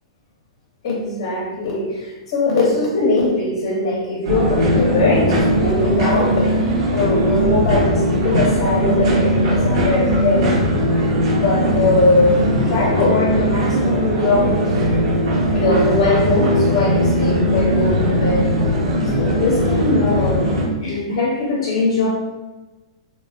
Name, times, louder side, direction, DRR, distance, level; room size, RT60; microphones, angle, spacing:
voice 1, 0.8-6.5 6.9-10.5 11.3-14.8 15.5-18.5 19.0-20.5 20.8-22.1, left 2 dB, 45° left, -2 dB, 0.6 m, -20 dB
sound 1, 4.2-20.7, equal, 55° right, 0.7 m, -19 dB
3.3 x 2.1 x 2.5 m, 1.1 s
figure-of-eight pair, 105°, 3 cm